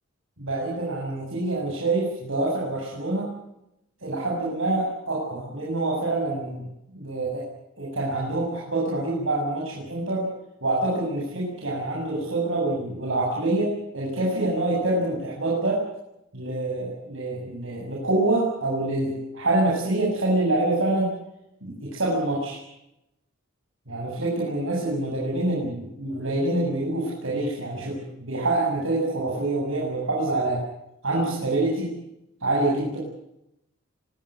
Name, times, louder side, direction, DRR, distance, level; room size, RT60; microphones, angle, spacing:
voice 1, 0.4-3.3 4.0-6.6 6.9-7.4 7.8-10.3 10.6-15.8 16.3-21.1 21.6-22.6 23.9-30.6 31.0-31.9 32.4-33.0, right 2 dB, 70° right, -4 dB, 7.9 m, -26 dB
25.5 x 17.0 x 9.6 m, 0.85 s
head